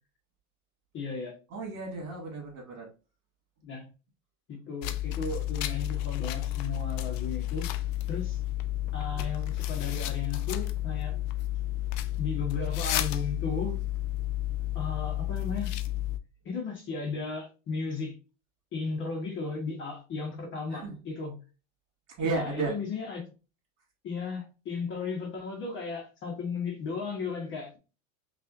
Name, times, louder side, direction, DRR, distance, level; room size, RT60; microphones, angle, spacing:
voice 1, 0.9-1.4 3.6-3.9 4.5-7.7 8.1-8.4 8.9-11.2 12.2-13.8 14.7-15.7 16.4-18.2 18.7-21.4 22.2-23.3 24.0-27.8, left 4 dB, 25° left, 1 dB, 0.9 m, -35 dB
voice 2, 1.5-2.9 20.7-21.0 22.1-22.8, right 3 dB, 45° right, 0 dB, 2.2 m, -33 dB
sound 1, 4.8-16.2, left 14 dB, 60° left, 0.6 m, -31 dB
5.3 x 2.5 x 2.5 m, 0.32 s
supercardioid pair, 135°, 43 cm